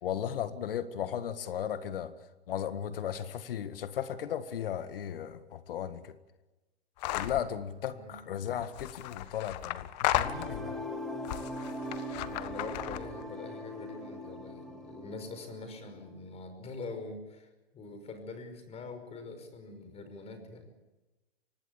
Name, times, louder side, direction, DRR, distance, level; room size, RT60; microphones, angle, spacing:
voice 1, 0.0-2.1 2.5-6.2 7.1-10.8, left 9 dB, 60° left, 12 dB, 1.8 m, -36 dB
sound 1, 7.0-7.4 8.6-10.8 11.2-13.2, left 14 dB, 40° left, 1.5 m, -34 dB
sound 2, 10.2-16.1, equal, ahead, 3.5 m, -41 dB
voice 2, 12.3-20.7, left 3 dB, 20° left, 8 dB, 5.5 m, -44 dB
25.5 x 19.0 x 8.5 m, 1.1 s
hypercardioid pair, 125°, 31 cm